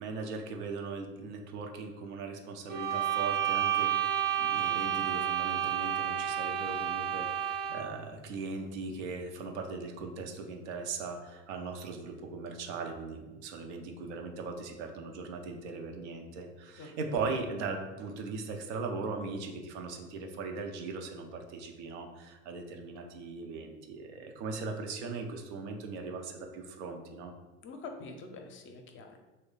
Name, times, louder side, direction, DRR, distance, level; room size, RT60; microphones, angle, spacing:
voice 1, 0.0-27.3, right 4 dB, 80° right, 3 dB, 0.6 m, -39 dB
sound 1, 2.7-8.0, right 10 dB, 30° right, 0.4 m, -30 dB
voice 2, 27.6-29.2, left 3 dB, 35° left, 4 dB, 0.5 m, -45 dB
3.1 x 2.2 x 3.7 m, 1.1 s
hypercardioid pair, 75°, 34 cm